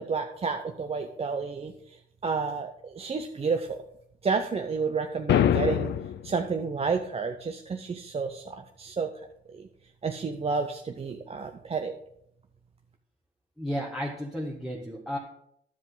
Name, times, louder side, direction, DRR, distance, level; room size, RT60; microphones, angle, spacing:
voice 1, 0.0-3.8 4.2-5.9 6.2-9.1 9.5-9.7 10.0-11.9, right 5 dB, 30° right, 5 dB, 0.6 m, -30 dB
sound 1, 5.3-6.3, left 10 dB, 60° left, 0.5 m, -24 dB
voice 2, 13.6-15.2, equal, ahead, -2 dB, 1.2 m, -33 dB
10.5 x 7.2 x 3.9 m, 0.74 s
cardioid pair, 90°, 20 cm